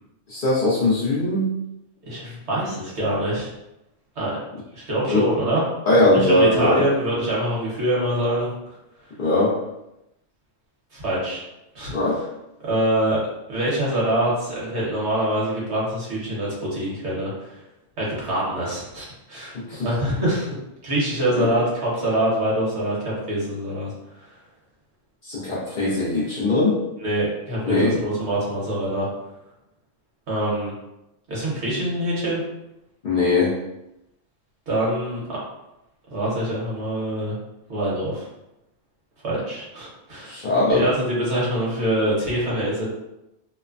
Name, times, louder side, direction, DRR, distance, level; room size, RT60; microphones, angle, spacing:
voice 1, 0.3-1.5 5.1-5.3 5.9-6.8 9.2-9.5 11.9-12.2 19.5-19.9 21.3-21.5 25.2-26.8 27.7-27.9 33.0-33.5 40.3-40.9, left 2 dB, 50° left, -7 dB, 0.7 m, -20 dB
voice 2, 2.1-3.5 4.2-4.3 4.7-5.6 6.1-8.5 10.9-11.4 11.7-11.9 12.6-13.2 13.5-17.6 18.0-19.6 19.8-20.5 20.8-23.9 24.2-24.3 27.0-29.1 30.3-30.7 31.3-32.4 34.7-35.4 36.1-37.4 37.7-38.3 39.2-40.4 40.7-42.8, right 1 dB, 65° right, -6 dB, 1.3 m, -24 dB
3.1 x 2.1 x 2.4 m, 0.90 s
omnidirectional pair, 1.3 m